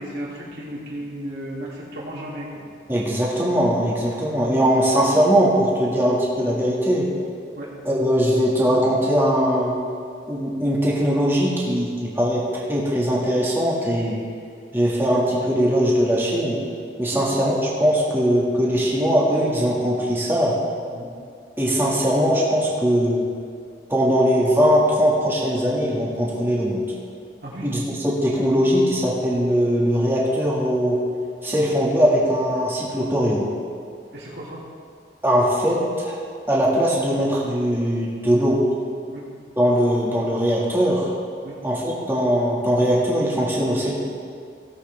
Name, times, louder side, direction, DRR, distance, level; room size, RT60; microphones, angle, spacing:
voice 1, 0.0-2.6 4.3-4.4 7.6-7.7 17.1-17.3 20.9-21.1 27.4-27.7 34.1-34.6 39.1-39.3 41.4-41.6, right 1 dB, 65° right, -6 dB, 3.1 m, -34 dB
voice 2, 2.9-7.1 7.8-9.7 10.3-14.3 14.7-16.6 17.0-20.5 21.6-23.2 23.9-26.8 27.6-31.0 31.4-33.5 35.2-36.2 36.5-38.6 39.6-41.1 41.6-43.9, equal, 15° right, -5 dB, 1.9 m, -20 dB
17.5 x 8.0 x 3.5 m, 2.3 s
head